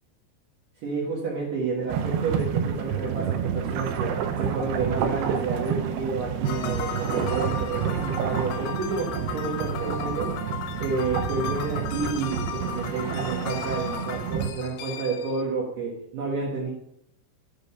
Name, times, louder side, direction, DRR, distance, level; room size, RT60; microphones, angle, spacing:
voice 1, 0.8-10.4 10.8-16.7, right 4 dB, 65° right, -4 dB, 2.3 m, -30 dB
sound 1, 1.9-14.5, right 8 dB, 90° right, 2.3 m, -29 dB
sound 2, 6.5-15.4, left 9 dB, 90° left, 3.3 m, -36 dB
7.9 x 5.2 x 6.8 m, 0.79 s
omnidirectional pair, 5.6 m